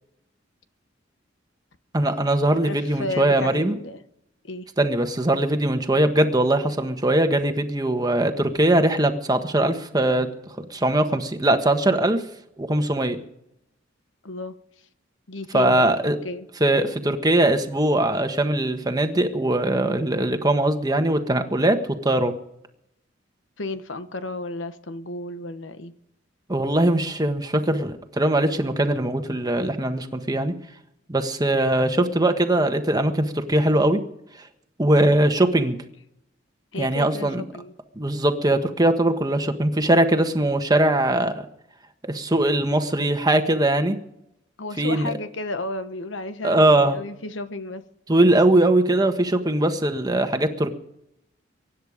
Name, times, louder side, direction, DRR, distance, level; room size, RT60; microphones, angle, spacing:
voice 1, 1.9-3.7 4.8-10.3 10.7-12.2 12.6-13.2 15.5-16.2 16.6-22.3 26.5-30.5 31.1-34.0 34.8-35.8 36.8-37.4 38.0-41.5 42.1-44.0 44.8-45.1 46.4-47.0 48.1-50.7, right 1 dB, 20° right, 6 dB, 1.5 m, -21 dB
voice 2, 2.6-4.0 4.4-4.7 14.2-14.5 15.3-16.5 23.6-25.9 36.7-37.7 44.6-47.8, left 2 dB, 75° left, 10 dB, 1.2 m, -33 dB
24.0 x 10.5 x 5.1 m, 0.79 s
head